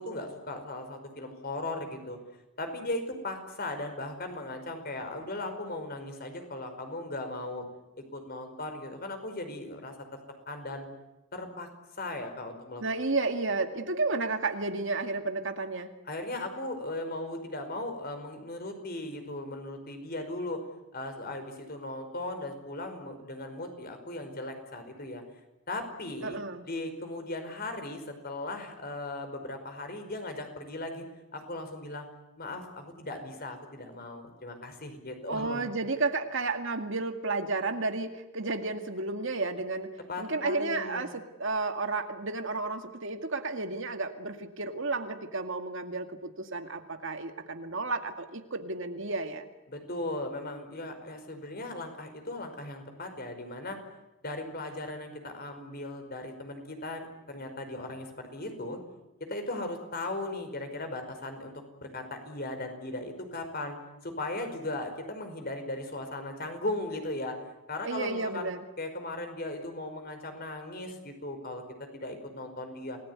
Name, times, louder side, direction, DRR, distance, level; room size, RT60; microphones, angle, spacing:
voice 1, 0.0-2.2 2.6-7.7 8.1-9.9 10.5-10.9 11.3-11.7 11.9-12.9 16.1-20.6 20.9-25.2 25.7-26.4 26.7-31.0 31.3-32.1 32.4-35.7 40.1-41.1 49.7-53.8 54.2-58.8 59.2-61.5 61.8-63.8 64.0-67.4 67.7-68.5 68.8-73.0, left 2 dB, 45° left, 6 dB, 5.2 m, -37 dB
voice 2, 12.8-15.9 26.2-26.6 35.3-39.9 40.2-49.5 67.8-68.6, right 3 dB, 55° right, 6 dB, 2.1 m, -32 dB
28.5 x 19.5 x 9.7 m, 0.97 s
head